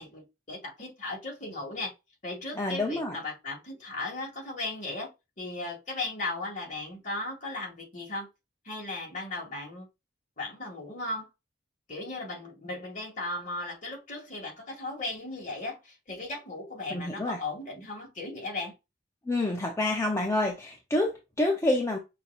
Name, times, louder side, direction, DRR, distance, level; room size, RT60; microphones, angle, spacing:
voice 1, 0.0-1.9 2.2-5.1 5.4-8.3 8.6-9.9 10.4-11.3 11.9-18.8, left 2 dB, 45° left, 2.0 m, -36 dB
voice 2, 2.6-3.2 16.9-17.4 19.3-22.0, left 1 dB, 15° left, 0.6 m, -28 dB
5.7 x 2.8 x 2.4 m
head